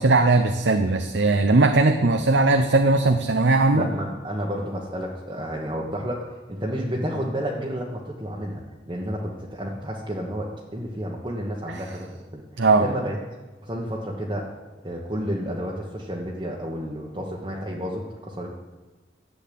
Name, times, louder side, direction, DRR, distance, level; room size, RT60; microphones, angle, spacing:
voice 1, 0.0-3.9 12.6-12.9, right 3 dB, 80° right, 7 dB, 0.8 m, -19 dB
voice 2, 3.7-12.4 12.8-13.2 13.6-14.5 14.8-18.5, equal, 25° right, -3 dB, 1.3 m, -31 dB
12.0 x 7.8 x 8.5 m, 1.2 s
head